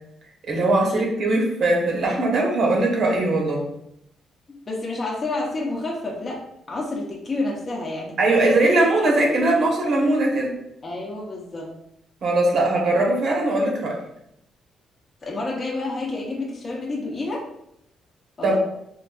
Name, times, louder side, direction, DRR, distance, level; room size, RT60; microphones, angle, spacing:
voice 1, 0.4-3.6 8.2-10.5 12.2-14.0 18.4-18.6, right 2 dB, 60° right, -1 dB, 0.9 m, -20 dB
voice 2, 4.7-6.4 6.7-8.6 9.1-9.2 10.8-11.7 15.2-17.4 18.4-18.6, left 2 dB, 30° left, -3 dB, 0.7 m, -29 dB
3.8 x 2.5 x 2.3 m, 0.77 s
cardioid pair, 90°, 0 cm